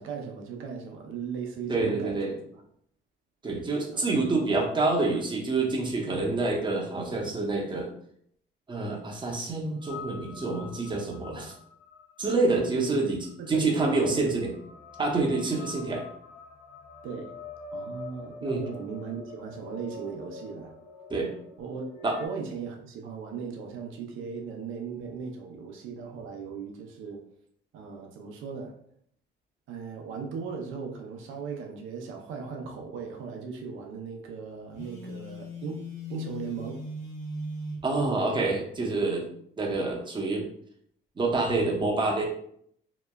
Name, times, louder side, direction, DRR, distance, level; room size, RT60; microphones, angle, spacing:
voice 1, 0.0-2.4 3.9-4.4 12.5-12.9 13.4-14.4 17.0-17.4 17.7-20.7 21.6-27.3 27.7-28.7 29.7-35.8 36.1-36.8, right 5 dB, 85° right, 2 dB, 0.5 m, -38 dB
voice 2, 1.7-2.3 3.4-7.9 8.7-11.5 12.2-14.5 15.0-16.0 18.4-18.6 21.1-21.3 22.0-22.2 37.8-39.3 39.6-40.5 41.2-42.2, right 3 dB, 25° right, 0 dB, 0.6 m, -27 dB
sound 1, 9.8-22.3, left 4 dB, 35° left, 0.5 m, -45 dB
Telephone, 34.7-37.9, left 1 dB, 80° left, 1.0 m, -38 dB
2.9 x 2.2 x 2.2 m, 0.67 s
cardioid pair, 90°, 20 cm